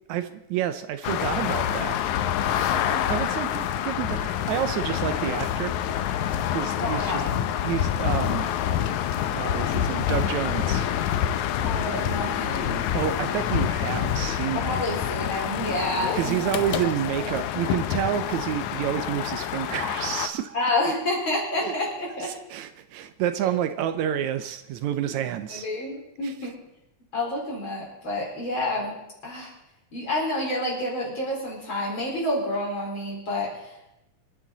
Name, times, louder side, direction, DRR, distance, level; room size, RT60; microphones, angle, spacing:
voice 1, 0.1-2.0 3.1-5.8 6.5-7.2 7.6-8.5 9.3-10.9 12.9-14.9 16.1-20.6 21.6-21.7 22.2-25.7 26.2-26.5, right 11 dB, 80° right, 10 dB, 2.0 m, -29 dB
sound 1, 1.0-20.3, left 10 dB, 85° left, 2.2 m, -27 dB
voice 2, 2.4-3.2 6.8-7.4 11.6-12.9 14.5-16.5 20.5-22.3 23.4-23.5 25.5-26.6 27.1-29.0 29.2-29.5 29.9-34.0, left 1 dB, 40° left, -3 dB, 5.3 m, -29 dB
26.5 x 10.5 x 4.0 m, 0.89 s
omnidirectional pair, 3.3 m